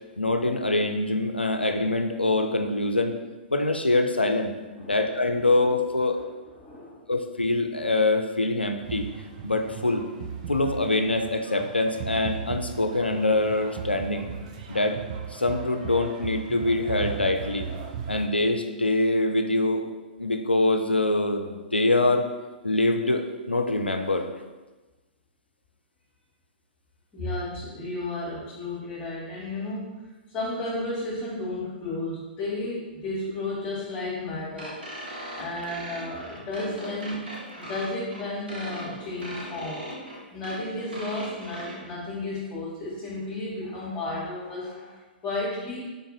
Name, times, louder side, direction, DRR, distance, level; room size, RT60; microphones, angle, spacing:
voice 1, 0.2-3.1 3.5-4.5 4.9-6.2 7.1-9.1 9.4-10.0 10.5-14.3 14.7-15.0 15.3-17.7 18.1-19.8 20.2-22.3 22.6-24.3, left 2 dB, 85° left, 5 dB, 0.4 m, -24 dB
voice 2, 6.6-7.1 27.1-30.0 30.3-34.8 35.3-37.3 37.6-39.9 40.3-45.8, left 2 dB, 25° left, -8 dB, 1.1 m, -33 dB
sound 1, 8.8-18.3, right 7 dB, 45° right, 0.4 m, -37 dB
sound 2, 34.6-41.8, right 1 dB, 75° right, 0.9 m, -39 dB
3.9 x 2.6 x 3.7 m, 1.2 s
figure-of-eight pair, 110°, 5 cm